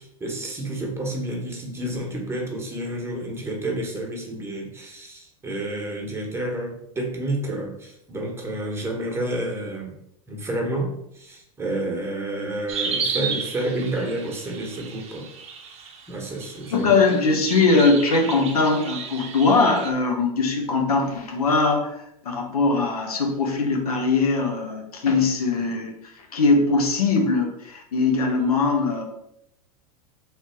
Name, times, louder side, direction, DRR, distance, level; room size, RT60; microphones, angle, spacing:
voice 1, 0.0-9.9 10.3-15.3 16.1-16.9, right 1 dB, 15° right, -1 dB, 1.2 m, -30 dB
sound 1, 12.7-19.9, right 5 dB, 35° right, 0.8 m, -33 dB
voice 2, 16.7-25.9 26.3-29.0, left 3 dB, 85° left, 2 dB, 0.9 m, -21 dB
3.3 x 2.9 x 4.4 m, 0.79 s
hypercardioid pair, 100°, 19 cm